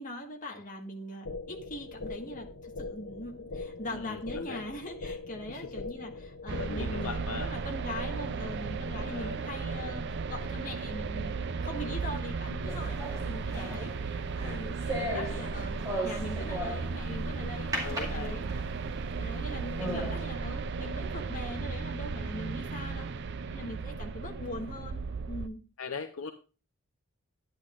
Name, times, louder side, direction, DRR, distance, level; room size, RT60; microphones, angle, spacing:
voice 1, 0.0-18.4 19.2-23.1 23.5-25.6, left 1 dB, 35° left, 1 dB, 1.6 m, -41 dB
sound 1, 1.2-7.2, left 3 dB, 90° left, 1.1 m, -41 dB
voice 2, 3.9-4.6 5.5-5.7 6.6-7.5 9.0-9.4 17.8-18.4 19.9-20.1 23.5-23.7 25.8-26.3, left 4 dB, 65° left, 7 dB, 0.7 m, -39 dB
sound 2, 6.5-25.5, right 4 dB, 50° right, 0.5 m, -35 dB
sound 3, 12.7-17.1 17.7-18.8 19.3-19.4 19.8-20.2, right 1 dB, 15° right, 2.2 m, -37 dB
11.5 x 10.5 x 2.5 m, 0.33 s
head